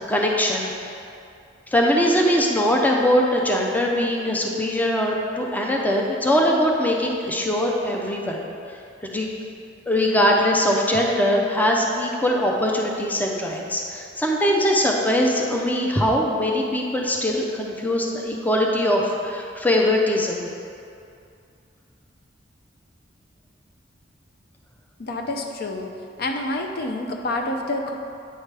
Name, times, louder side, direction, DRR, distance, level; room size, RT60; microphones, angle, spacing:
voice 1, 0.1-0.7 1.7-9.3 9.9-20.5, equal, 10° left, -1 dB, 0.5 m, -21 dB
voice 2, 25.0-25.9 26.2-27.9, left 2 dB, 55° left, 3 dB, 0.5 m, -28 dB
8.9 x 4.9 x 3.3 m, 2.5 s
head